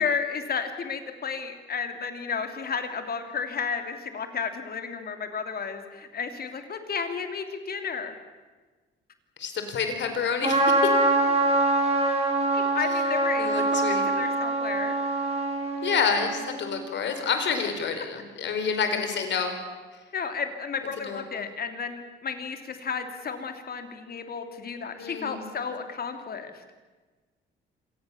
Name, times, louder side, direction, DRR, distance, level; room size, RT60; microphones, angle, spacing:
voice 1, 0.0-8.1 12.5-14.9 20.1-26.6, left 6 dB, 50° left, 7 dB, 3.1 m, -32 dB
voice 2, 9.4-10.6 13.4-14.0 15.8-19.5 19.9-20.0 21.1-21.4 25.0-25.5, left 6 dB, 65° left, 7 dB, 4.4 m, -28 dB
Trumpet, 10.4-16.6, right 2 dB, 30° right, 6.2 m, -24 dB
26.5 x 18.5 x 7.3 m, 1.3 s
cardioid pair, 90°, 20 cm